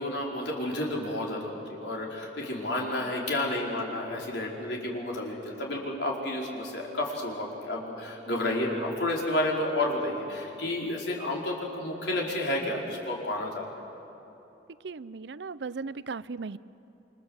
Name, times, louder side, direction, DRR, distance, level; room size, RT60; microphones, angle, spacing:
voice 1, 0.0-13.6, left 1 dB, 75° left, -2 dB, 4.7 m, -31 dB
voice 2, 14.8-16.6, right 4 dB, 75° right, 17 dB, 0.6 m, -37 dB
28.0 x 25.5 x 7.9 m, 2.9 s
head